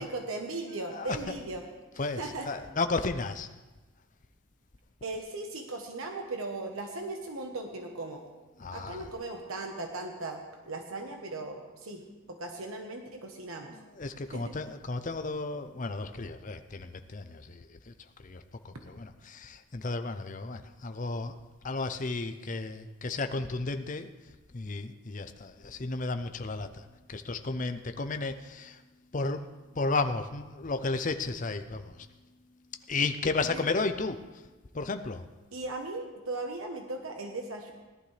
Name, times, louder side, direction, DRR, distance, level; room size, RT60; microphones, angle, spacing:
voice 1, 0.0-1.6 2.2-2.5 5.0-8.2 8.7-10.4 10.7-12.0 12.3-13.8 14.3-14.4 35.5-37.7, right 2 dB, 70° right, 3 dB, 1.1 m, -37 dB
voice 2, 0.9-1.4 2.0-3.5 8.6-9.1 13.7-21.4 21.6-24.1 24.5-28.8 29.1-32.1 32.5-35.3, left 3 dB, 35° left, 9 dB, 0.6 m, -34 dB
18.0 x 11.5 x 3.3 m, 1.2 s
head